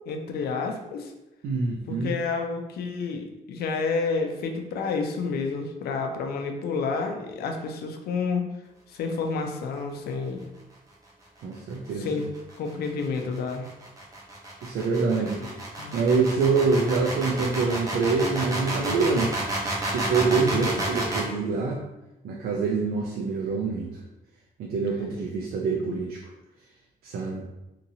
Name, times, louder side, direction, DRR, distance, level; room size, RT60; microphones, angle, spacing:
voice 1, 0.1-1.1 1.9-8.4 8.9-10.4 11.9-12.3 12.6-13.7 15.2-16.0 20.3-20.7, left 4 dB, 85° left, 4 dB, 0.5 m, -30 dB
voice 2, 1.4-2.1 11.4-12.2 14.6-15.4 15.9-19.3 19.9-21.8 22.2-23.9 24.6-26.2 27.0-27.5, right 4 dB, 85° right, -1 dB, 0.4 m, -25 dB
sound 1, 12.0-21.3, right 1 dB, 20° right, 0.6 m, -31 dB
2.9 x 2.7 x 2.7 m, 0.98 s
cardioid pair, 160°, 16 cm